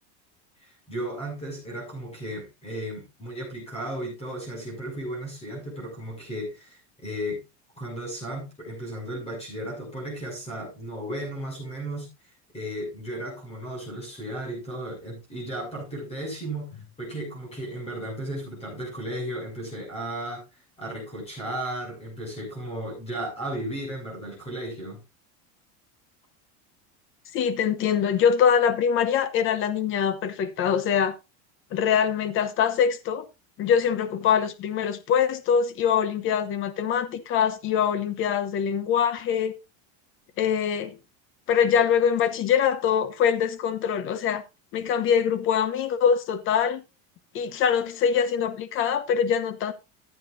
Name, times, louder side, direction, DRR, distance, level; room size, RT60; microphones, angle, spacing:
voice 1, 0.6-7.4 7.8-12.1 12.5-20.4 20.8-25.0, right 1 dB, 15° left, 6.8 m, -35 dB
voice 2, 27.3-31.1 31.7-33.2 33.6-39.5 40.4-40.9 41.5-44.4 44.7-46.8 47.3-49.7, left 8 dB, 30° left, 1.0 m, -23 dB
14.5 x 9.2 x 2.6 m
cardioid pair, 170°, 38 cm